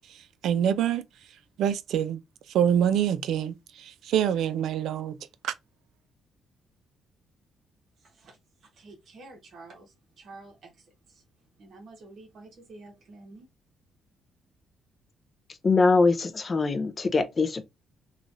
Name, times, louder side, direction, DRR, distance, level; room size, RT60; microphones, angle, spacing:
voice 1, 0.4-1.0 1.6-2.2 2.5-5.2 5.4-5.5, right 9 dB, 80° right, 0.3 m, -25 dB
voice 2, 8.0-11.2 11.6-13.5, right 3 dB, 55° right, 1.0 m, -50 dB
voice 3, 15.6-17.6, left 3 dB, 30° left, 0.4 m, -23 dB
3.0 x 2.3 x 2.5 m
cardioid pair, 105°, 0 cm